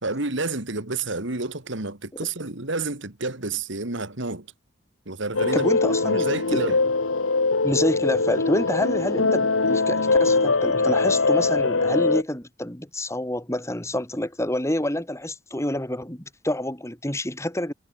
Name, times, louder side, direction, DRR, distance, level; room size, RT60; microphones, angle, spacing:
voice 1, 0.0-4.5 5.1-6.8, right 3 dB, 65° right, 2.5 m, -30 dB
sound 1, 5.3-12.2, left 3 dB, 80° left, 1.6 m, -22 dB
voice 2, 5.5-6.7 7.6-17.7, left 1 dB, 15° left, 2.6 m, -28 dB
head